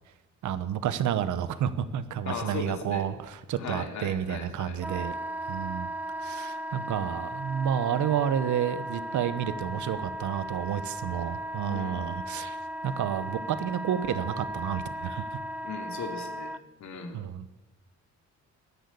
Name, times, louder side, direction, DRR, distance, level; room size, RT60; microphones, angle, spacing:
voice 1, 0.4-5.1 5.5-5.9 6.2-12.6 12.8-15.3 17.1-17.5, right 9 dB, 75° right, 13 dB, 1.2 m, -30 dB
voice 2, 2.2-3.1 3.6-4.8 11.7-12.0 15.6-16.5 16.8-17.2, left 5 dB, 70° left, 3 dB, 3.1 m, -37 dB
Wind instrument woodwind instrument, 4.8-16.6, right 1 dB, 5° right, 0.4 m, -36 dB
16.5 x 10.5 x 8.5 m, 1.0 s
cardioid pair, 90°, 30 cm